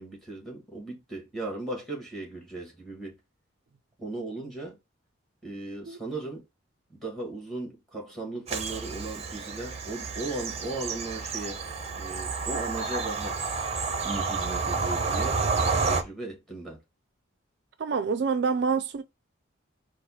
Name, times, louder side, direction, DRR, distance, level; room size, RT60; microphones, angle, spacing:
voice 1, 0.0-3.1 4.0-4.8 5.4-6.4 6.9-11.6 11.9-13.4 14.0-15.4 15.8-16.8, right 2 dB, ahead, 2.0 m, -37 dB
Bird vocalization bird call bird song / Train, 8.5-16.0, right 4 dB, 30° right, 0.7 m, -30 dB
voice 2, 17.8-19.0, right 5 dB, 55° right, 0.4 m, -26 dB
4.2 x 2.5 x 4.2 m
head